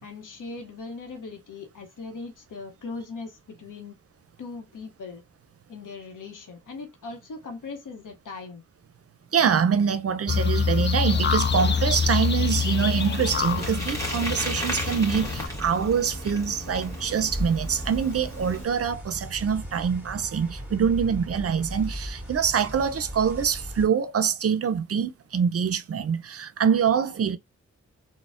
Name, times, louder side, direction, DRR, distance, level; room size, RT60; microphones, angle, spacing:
voice 1, 0.0-4.0 4.4-5.2 5.7-8.6, left 4 dB, 85° left, 0.8 m, -39 dB
voice 2, 9.3-27.4, right 7 dB, 50° right, 0.5 m, -25 dB
sound 1, 10.3-15.5, left 6 dB, 35° left, 0.5 m, -25 dB
Bicycle, 11.1-18.6, equal, 10° left, 1.5 m, -35 dB
sound 2, 15.1-23.9, equal, 5° right, 1.9 m, -37 dB
4.0 x 2.1 x 2.4 m
cardioid pair, 50°, 30 cm